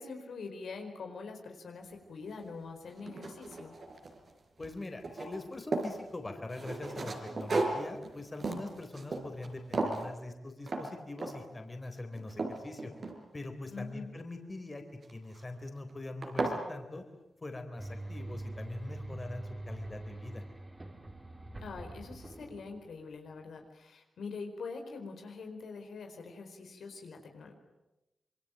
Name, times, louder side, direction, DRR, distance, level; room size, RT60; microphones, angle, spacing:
voice 1, 0.0-3.7 13.7-14.1 21.6-27.5, left 4 dB, 85° left, 4 dB, 4.5 m, -44 dB
sound 1, 2.3-2.4 2.9-4.3 4.6-6.0 6.5-9.5 9.7-10.1 10.7-10.9 11.2-11.5 12.0-13.5 15.0-15.4 15.9-16.0 16.2-16.6, right 3 dB, 55° right, 4.9 m, -35 dB
voice 2, 4.6-12.9 13.3-14.8 15.1-17.0 17.4-20.4, left 2 dB, 30° left, 6 dB, 4.0 m, -43 dB
sound 2, 17.8-23.1, right 1 dB, 20° right, 3.9 m, -44 dB
26.5 x 23.0 x 9.1 m, 0.98 s
wide cardioid pair, 90°, 0 cm